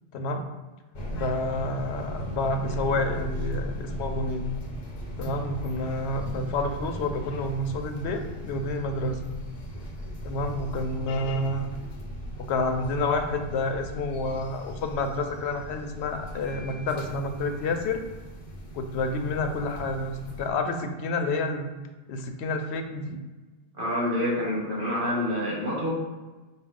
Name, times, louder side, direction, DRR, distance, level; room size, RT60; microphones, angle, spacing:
sound 1, 0.9-20.5, equal, 45° left, 0.7 m, -37 dB
voice 1, 1.1-4.5 5.2-9.2 10.2-11.7 12.4-18.0 18.7-21.7 22.1-23.2, left 2 dB, 85° left, 6 dB, 0.8 m, -29 dB
voice 2, 23.7-25.9, left 1 dB, 55° right, -6 dB, 1.6 m, -27 dB
4.8 x 2.3 x 3.6 m, 1.2 s
omnidirectional pair, 1.1 m